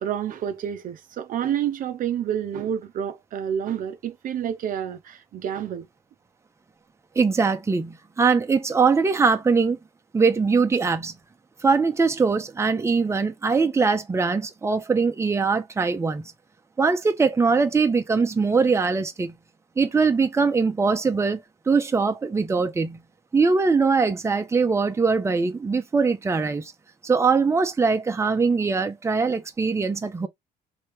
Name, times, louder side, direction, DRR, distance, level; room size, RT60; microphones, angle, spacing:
voice 1, 0.0-5.9, right 9 dB, 55° right, 0.6 m, -29 dB
voice 2, 7.2-9.8 10.1-11.1 11.6-16.2 16.8-19.3 19.8-23.0 23.3-26.7 27.0-30.3, right 4 dB, 15° right, 0.7 m, -22 dB
3.2 x 2.8 x 4.6 m
cardioid pair, 110°, 17 cm